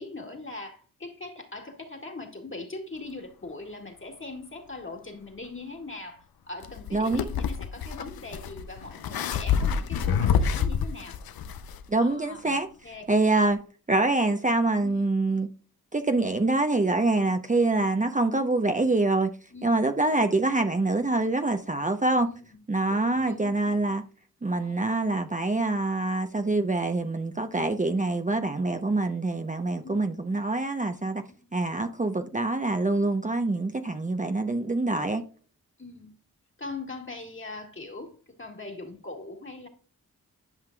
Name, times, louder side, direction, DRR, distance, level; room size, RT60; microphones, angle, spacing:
voice 1, 0.0-11.2 12.0-13.0 14.8-15.1 17.2-17.4 19.5-19.8 22.2-22.6 22.9-23.6 24.5-24.9 27.5-27.8 29.8-30.2 31.3-31.5 35.8-36.2 36.6-39.7, left 3 dB, 35° left, 2.0 m, -41 dB
sound 1, 6.6-11.8, left 7 dB, 75° left, 0.6 m, -28 dB
voice 2, 6.9-7.3 11.9-12.7 13.1-13.6 13.9-15.5 15.9-19.3 19.6-22.3 22.7-24.0 24.4-31.2 31.5-35.2, right 2 dB, 20° right, 0.7 m, -25 dB
11.0 x 5.8 x 2.3 m
cardioid pair, 50°, 36 cm